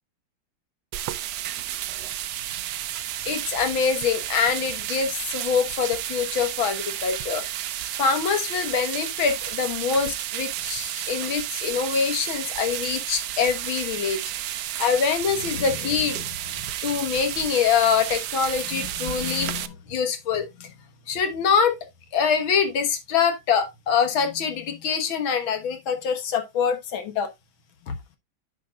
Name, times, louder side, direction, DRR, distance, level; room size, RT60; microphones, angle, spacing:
sound 1, 0.9-19.7, right 12 dB, 70° right, 1.1 m, -32 dB
voice 1, 3.3-7.4 8.0-14.2 14.8-20.7 21.1-21.7 22.1-27.3 27.9-28.0, left 6 dB, 85° left, 2.1 m, -24 dB
10.0 x 6.6 x 2.3 m
omnidirectional pair, 2.1 m